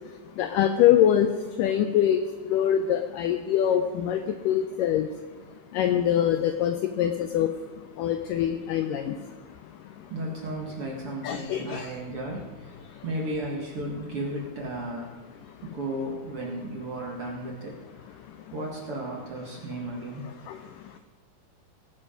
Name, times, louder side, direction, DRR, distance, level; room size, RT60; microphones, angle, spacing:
voice 1, 0.4-1.3 1.6-4.2 4.5-5.1 5.7-7.5 8.0-9.2 11.2-11.9 20.5-20.6, left 10 dB, 85° left, 8 dB, 1.9 m, -24 dB
voice 2, 10.1-15.2 15.6-18.2 18.5-20.3, right 1 dB, 50° right, -2 dB, 1.9 m, -34 dB
18.0 x 7.4 x 5.1 m, 1.4 s
omnidirectional pair, 4.4 m